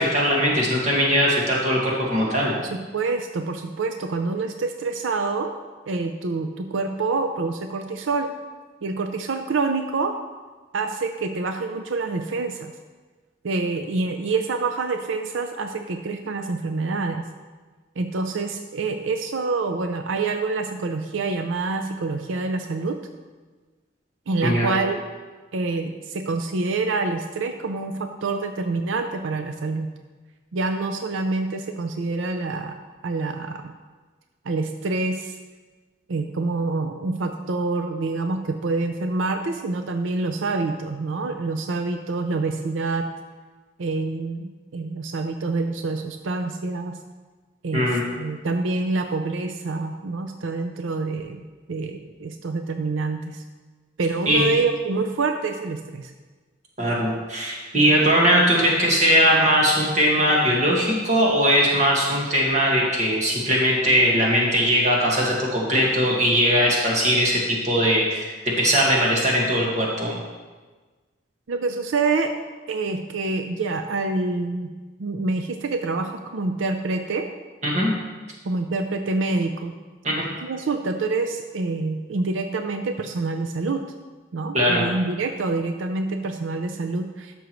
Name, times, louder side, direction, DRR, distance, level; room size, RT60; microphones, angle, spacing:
voice 1, 0.0-2.5 24.4-24.7 47.7-48.0 54.3-54.5 56.8-68.3 68.6-70.2 77.6-77.9 80.0-80.3 84.5-84.8, equal, 35° right, -3 dB, 1.8 m, -20 dB
voice 2, 2.9-5.5 5.9-8.3 8.8-10.2 10.7-12.7 13.4-17.2 18.0-23.0 24.3-25.0 25.5-29.9 30.5-32.8 33.0-33.7 34.5-35.4 36.1-43.1 43.8-47.0 47.6-47.9 48.2-51.4 51.7-53.4 54.0-56.1 71.5-72.3 72.7-74.7 75.0-77.3 78.4-79.7 80.4-83.8 84.3-87.3, right 3 dB, 90° right, 6 dB, 0.5 m, -26 dB
13.0 x 6.2 x 3.1 m, 1.3 s
head